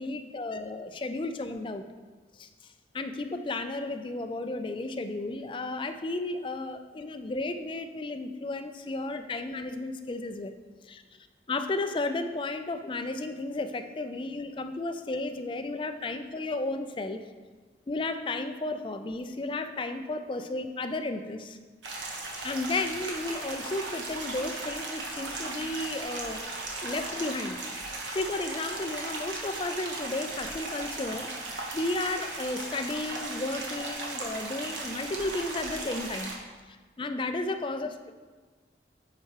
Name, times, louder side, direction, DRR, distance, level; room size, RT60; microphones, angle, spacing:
voice 1, 0.0-1.8 2.4-2.5 2.9-10.5 10.8-11.0 11.5-17.2 17.9-21.6 22.4-26.4 26.8-27.6 28.1-36.3 36.7-38.1, left 2 dB, 25° left, 8 dB, 0.4 m, -33 dB
sound 1, 21.8-36.3, right 2 dB, 90° right, 1.3 m, -37 dB
8.3 x 4.7 x 4.7 m, 1.4 s
head